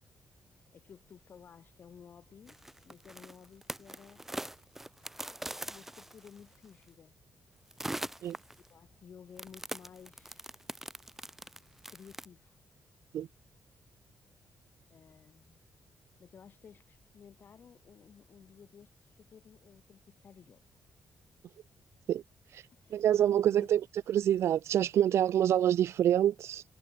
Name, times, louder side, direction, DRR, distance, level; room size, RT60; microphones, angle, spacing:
voice 1, 0.7-2.6 2.8-4.2 5.6-7.1 8.7-10.5 11.9-12.6 14.9-15.6 16.2-20.8 22.7-23.1 23.5-23.8, left 7 dB, 45° left, 7.3 m, -55 dB
sound 1, 2.5-6.6 7.7-8.7 9.4-12.3, right 1 dB, 5° right, 4.9 m, -42 dB
voice 2, 22.9-23.8 24.1-26.6, right 11 dB, 75° right, 0.9 m, -26 dB
wide cardioid pair, 150°, 5 cm